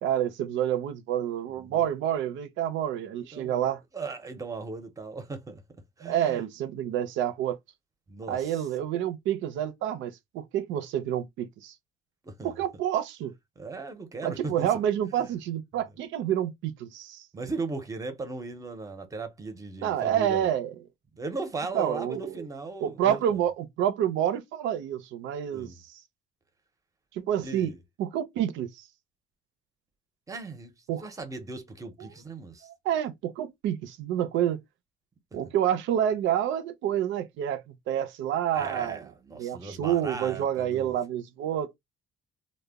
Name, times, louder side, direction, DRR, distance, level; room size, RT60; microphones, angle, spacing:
voice 1, 0.0-3.8 6.0-7.6 8.3-11.7 12.4-13.3 14.2-17.3 19.8-20.7 21.7-22.3 22.8-25.7 27.1-27.7 28.0-28.9 30.9-31.0 32.8-34.6 35.3-39.0 39.4-41.7, right 10 dB, 80° right, 0.5 m, -28 dB
voice 2, 1.5-1.9 3.2-3.7 3.9-5.6 6.0-6.4 8.1-8.7 12.2-12.6 13.6-14.7 15.2-15.3 17.3-20.5 21.1-23.4 25.5-25.8 27.4-27.8 30.3-32.7 38.5-41.0, right 3 dB, 15° right, 0.6 m, -38 dB
2.1 x 2.0 x 3.4 m
cardioid pair, 145°, 19 cm